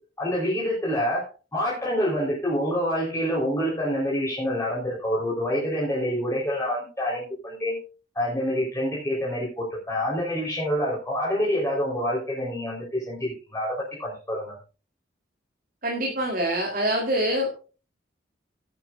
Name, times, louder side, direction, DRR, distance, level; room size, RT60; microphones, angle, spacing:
voice 1, 0.2-7.8 8.1-14.5, equal, 15° left, -5 dB, 4.2 m, -27 dB
voice 2, 15.8-17.5, equal, 50° right, 0 dB, 3.7 m, -25 dB
17.0 x 10.5 x 2.5 m, 0.35 s
head